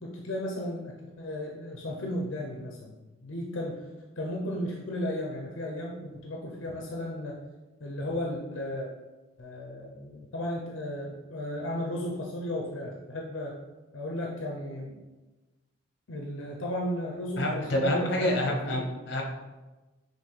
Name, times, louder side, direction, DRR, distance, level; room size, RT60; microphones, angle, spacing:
voice 1, 0.0-3.0 3.2-3.8 4.2-7.4 7.8-8.9 9.4-13.6 13.9-14.9 16.1-18.8, left 1 dB, 80° left, -2 dB, 0.6 m, -34 dB
voice 2, 17.4-19.2, left 1 dB, 55° left, 0 dB, 0.9 m, -27 dB
5.8 x 2.6 x 3.2 m, 1.1 s
head